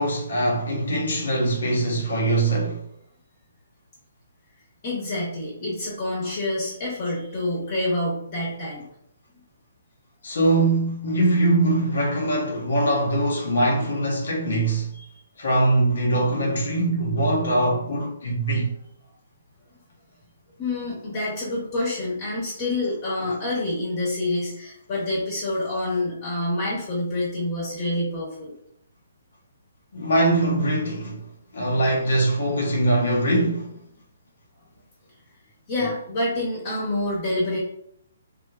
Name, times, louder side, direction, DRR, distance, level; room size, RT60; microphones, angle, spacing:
voice 1, 0.0-2.8 10.2-14.9 15.4-18.7 23.2-23.3 29.9-31.2 31.5-33.7, right 1 dB, 60° left, 0.8 m, -22 dB
voice 2, 4.8-8.8 14.9-15.0 20.6-28.5 35.7-37.6, left 1 dB, 35° left, 1.1 m, -27 dB
3.2 x 2.4 x 2.4 m
figure-of-eight pair, 130°, 0 cm